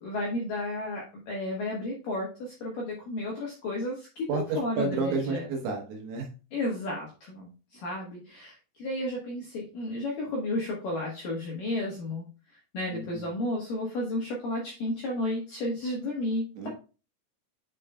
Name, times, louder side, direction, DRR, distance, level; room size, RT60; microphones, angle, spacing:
voice 1, 0.0-5.5 6.5-16.7, left 1 dB, 75° left, -3 dB, 2.0 m, -33 dB
voice 2, 4.3-6.3 12.9-13.3 16.6-16.7, right 3 dB, 75° right, 2 dB, 2.9 m, -31 dB
9.5 x 5.4 x 2.2 m, 0.34 s
omnidirectional pair, 5.9 m